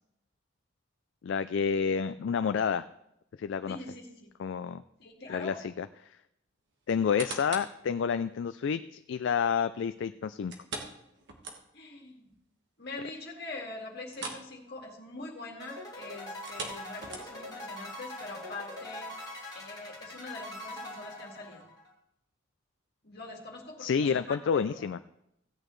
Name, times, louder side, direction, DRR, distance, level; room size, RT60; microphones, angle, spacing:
voice 1, 1.2-2.9 3.4-3.8 4.4-4.8 5.3-5.9 6.9-8.8 9.1-10.5 23.8-25.0, left 6 dB, 70° left, 11 dB, 0.3 m, -29 dB
voice 2, 3.7-4.3 5.0-5.6 11.7-12.3 12.8-19.1 19.5-21.7 23.0-24.9, left 2 dB, 55° left, 0 dB, 2.0 m, -43 dB
sound 1, 6.9-7.8 8.3-8.4 10.5-12.0 12.3-12.4 12.8-12.9 14.1-14.5 14.8-15.0 16.3-17.6 18.2-18.3, right 3 dB, 60° right, 1.5 m, -41 dB
sound 2, 15.6-21.9, left 1 dB, 20° left, 2.6 m, -43 dB
16.0 x 8.7 x 3.2 m, 0.79 s
head